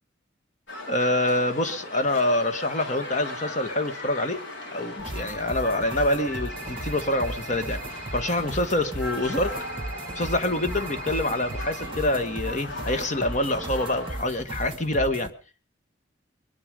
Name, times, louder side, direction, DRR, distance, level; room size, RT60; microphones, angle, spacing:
sound 1, 0.7-14.2, left 2 dB, 80° left, 3.6 m, -38 dB
voice 1, 0.9-4.4 4.7-7.8 8.1-9.6 10.1-15.3, left 1 dB, 40° left, 1.6 m, -26 dB
sound 2, 5.0-15.3, right 1 dB, 30° right, 0.9 m, -37 dB
sound 3, 6.5-8.3 9.5-11.9, right 5 dB, 5° left, 2.9 m, -43 dB
23.0 x 11.0 x 5.2 m
head